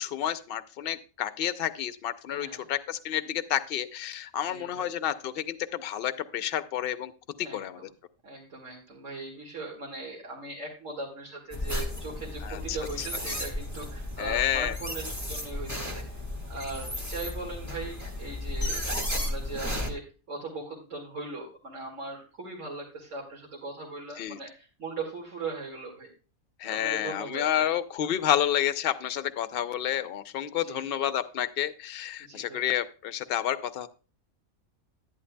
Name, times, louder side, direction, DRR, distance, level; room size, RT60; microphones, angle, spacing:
voice 1, 0.0-7.1 7.4-7.8 12.4-13.1 14.2-14.7 24.2-24.4 26.6-33.9, left 10 dB, 55° left, 12 dB, 0.7 m, -30 dB
voice 2, 2.3-2.7 4.5-4.9 7.4-7.9 8.2-16.0 16.5-20.0 20.3-26.1 26.6-27.7 30.6-30.8 32.2-32.6, right 3 dB, 60° right, -3 dB, 2.3 m, -39 dB
sound 1, 11.5-19.9, left 1 dB, 10° right, 1.6 m, -34 dB
11.0 x 10.5 x 2.2 m, 0.34 s
omnidirectional pair, 1.5 m